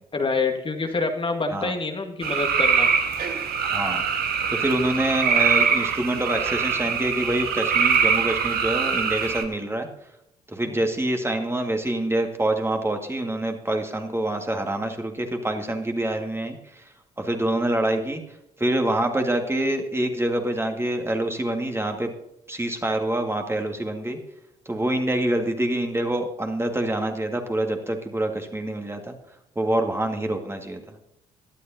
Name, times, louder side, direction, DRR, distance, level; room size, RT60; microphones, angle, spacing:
voice 1, 0.1-2.9 10.7-10.8, left 3 dB, 30° left, 4 dB, 1.6 m, -26 dB
sound 1, 2.2-9.4, right 6 dB, 55° right, 1.5 m, -23 dB
voice 2, 3.6-4.0 4.5-9.9 10.5-16.8 17.2-18.2 18.6-22.1 22.5-24.2 24.7-29.2 29.6-30.8, right 1 dB, 15° right, 4 dB, 1.9 m, -26 dB
17.5 x 12.0 x 2.8 m, 0.82 s
figure-of-eight pair, 45°, 19 cm